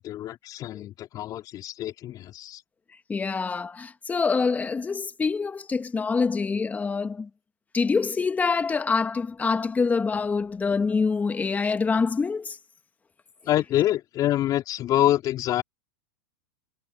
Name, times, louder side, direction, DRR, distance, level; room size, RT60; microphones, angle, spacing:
voice 1, 0.0-2.6 13.5-15.6, left 13 dB, 35° left, 4.3 m, -26 dB
voice 2, 3.1-7.3 7.7-12.6, left 4 dB, 15° left, 2.0 m, -25 dB
hypercardioid pair, 115°, 10 cm